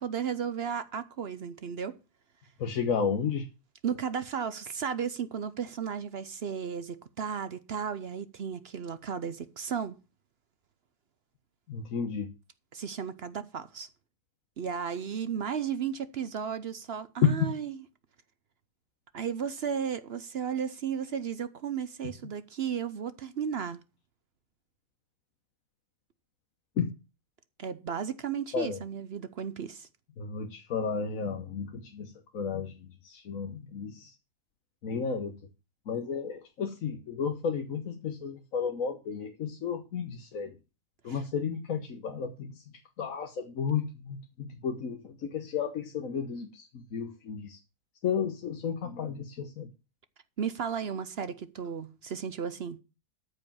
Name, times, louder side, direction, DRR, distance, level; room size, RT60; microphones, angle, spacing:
voice 1, 0.0-2.0 3.8-9.9 12.7-13.9 14.6-17.7 19.1-23.8 27.6-29.9 41.1-41.2 50.4-52.8, right 7 dB, 55° right, 0.7 m, -34 dB
voice 2, 2.6-3.5 11.7-12.3 17.2-17.5 26.8-26.9 28.5-28.8 30.2-34.1 34.8-35.4 35.9-40.5 41.0-42.6 43.0-47.6 48.0-49.7, left 6 dB, 60° left, 1.4 m, -32 dB
13.5 x 5.0 x 7.1 m
omnidirectional pair, 1.7 m